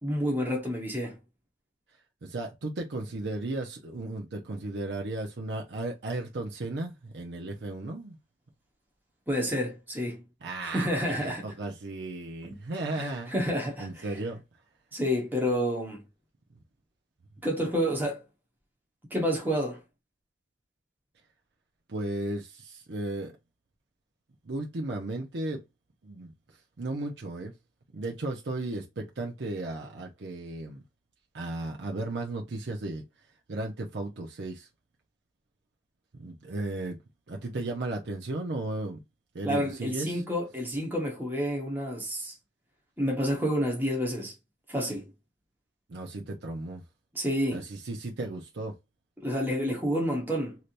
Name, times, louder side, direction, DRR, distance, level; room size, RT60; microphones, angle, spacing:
voice 1, 0.0-1.2 9.3-10.2 10.6-11.5 12.9-13.9 14.9-16.0 17.4-18.2 19.1-19.8 39.4-42.3 43.0-44.3 44.7-45.1 47.1-47.6 49.2-50.6, equal, 10° right, 1.1 m, -29 dB
voice 2, 1.9-8.2 10.4-13.3 13.8-14.4 21.9-23.4 24.4-25.6 26.0-27.5 27.9-30.8 31.3-33.0 33.5-34.7 36.2-37.0 37.3-39.0 39.3-40.2 45.9-46.8 47.5-48.7, right 2 dB, 70° right, 0.6 m, -35 dB
3.3 x 2.8 x 2.5 m
head